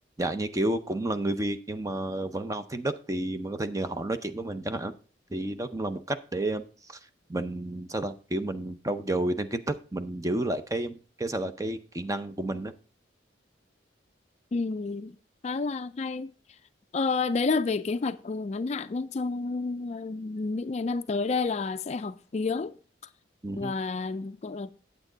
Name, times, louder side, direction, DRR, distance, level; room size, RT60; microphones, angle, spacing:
voice 1, 0.2-4.9 5.3-7.0 7.3-12.7 23.4-23.7, right 1 dB, 15° right, 0.5 m, -31 dB
voice 2, 14.5-15.2 15.4-16.3 16.9-22.8 23.6-24.7, left 4 dB, 35° left, 0.3 m, -30 dB
8.6 x 8.0 x 3.9 m
head